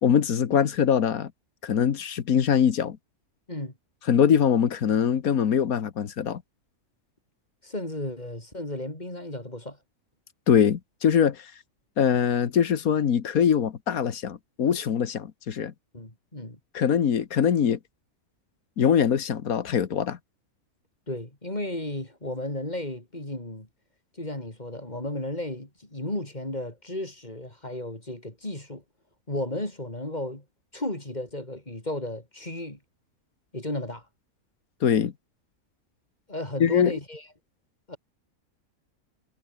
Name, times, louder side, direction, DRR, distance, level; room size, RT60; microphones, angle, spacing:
voice 1, 0.0-1.3 1.6-3.0 4.1-6.4 10.5-11.5 12.0-15.7 16.7-17.8 18.8-20.2 34.8-35.1 36.6-36.9, left 8 dB, 70° left, 1.7 m, -23 dB
voice 2, 7.6-9.8 15.9-16.6 21.1-23.7 24.2-28.8 29.3-30.4 30.7-32.8 33.5-34.0 36.3-37.2 37.9-38.0, left 1 dB, 30° left, 5.1 m, -34 dB
omnidirectional pair, 1.6 m